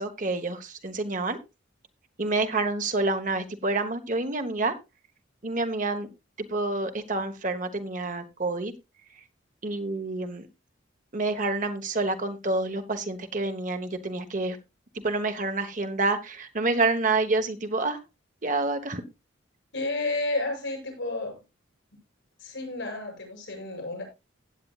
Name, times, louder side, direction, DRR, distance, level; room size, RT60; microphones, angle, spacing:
voice 1, 0.0-1.4 2.2-4.7 5.4-6.1 6.4-8.7 9.6-10.5 11.1-14.6 14.9-18.0 18.4-19.0, right 3 dB, 40° right, 8 dB, 1.1 m, -28 dB
voice 2, 19.7-21.4 22.4-24.0, left 2 dB, 75° left, 1 dB, 6.8 m, -31 dB
16.0 x 8.8 x 2.4 m, 0.25 s
head